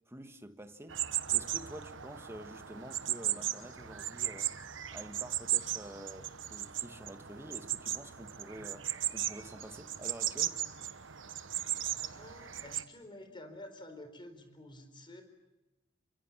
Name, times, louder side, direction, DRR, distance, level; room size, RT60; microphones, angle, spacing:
voice 1, 0.1-1.0 1.3-4.6 4.9-10.6, right 1 dB, 15° right, 1.6 m, -48 dB
sound 1, 0.9-12.8, right 12 dB, 70° right, 1.3 m, -36 dB
voice 2, 12.0-15.2, left 1 dB, 25° left, 4.3 m, -50 dB
29.5 x 25.0 x 7.4 m
head